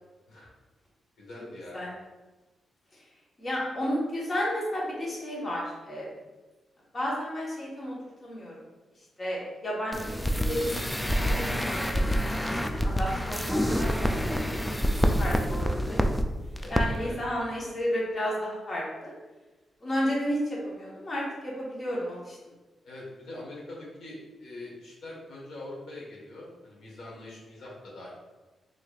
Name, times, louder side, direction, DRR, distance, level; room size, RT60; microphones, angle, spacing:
voice 1, 1.2-1.8 16.6-17.2 22.8-28.1, left 2 dB, 80° left, -4 dB, 1.4 m, -43 dB
voice 2, 3.4-6.1 6.9-8.0 8.2-8.5 9.2-10.8 11.2-12.0 12.4-14.6 15.2-16.0 16.7-19.1 19.8-22.4, equal, 35° left, -5 dB, 1.3 m, -32 dB
sound 1, 9.9-16.2 16.6-16.8 17.1-17.2, equal, 5° left, 0.3 m, -27 dB
4.8 x 3.2 x 2.5 m, 1.2 s
cardioid pair, 85°, 0 cm